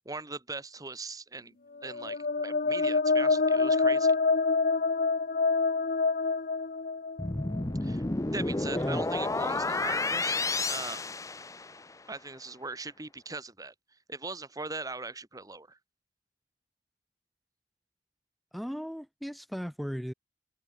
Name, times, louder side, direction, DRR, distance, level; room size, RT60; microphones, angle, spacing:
voice 1, 0.0-1.6 1.8-4.1 7.8-8.0 8.3-11.1 12.1-13.7 14.1-15.8, right 3 dB, 20° right, 2.8 m, -40 dB
sound 1, 1.8-7.6, left 4 dB, 50° left, 0.8 m, -26 dB
sound 2, 7.2-11.9, left 2 dB, 20° left, 0.8 m, -31 dB
voice 2, 18.5-20.1, equal, ahead, 1.9 m, -36 dB
open air
head